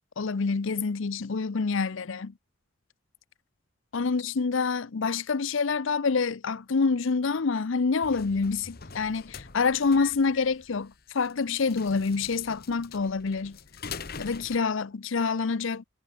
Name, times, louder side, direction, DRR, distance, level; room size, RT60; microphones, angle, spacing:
voice 1, 0.2-2.3 3.9-13.6 14.2-15.8, left 4 dB, 65° left, 0.6 m, -27 dB
sound 1, 8.0-14.6, left 5 dB, 45° left, 1.2 m, -44 dB
head